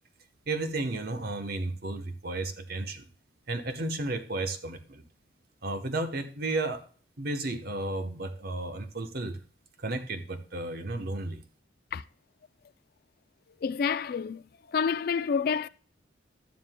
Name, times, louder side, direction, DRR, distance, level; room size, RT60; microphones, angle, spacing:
voice 1, 0.5-3.1 3.5-5.0 5.6-6.8 7.2-9.4 9.8-11.4, right 2 dB, 55° right, 1.0 m, -33 dB
voice 2, 13.6-14.4 14.7-15.7, left 6 dB, 55° left, 0.3 m, -28 dB
11.5 x 9.4 x 2.2 m
head